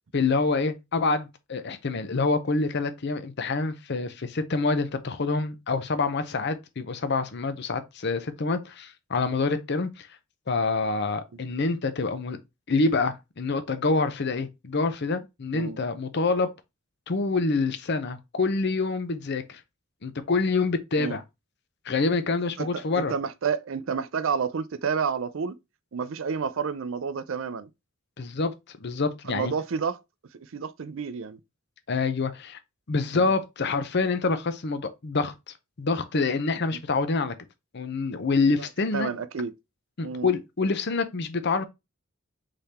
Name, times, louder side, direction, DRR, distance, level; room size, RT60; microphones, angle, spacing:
voice 1, 0.1-10.1 10.5-12.4 12.7-16.5 17.1-19.6 20.0-21.2 21.8-23.1 28.2-29.5 31.9-32.6 32.9-35.3 35.8-37.3 37.7-39.1 40.0-41.6, left 3 dB, 55° left, 0.7 m, -26 dB
voice 2, 22.6-25.6 25.9-27.7 29.3-30.0 30.3-31.4 33.1-33.3 36.7-36.8 38.5-38.6 38.9-39.5 40.0-40.3, right 6 dB, 65° right, 0.5 m, -30 dB
3.8 x 3.3 x 4.1 m
head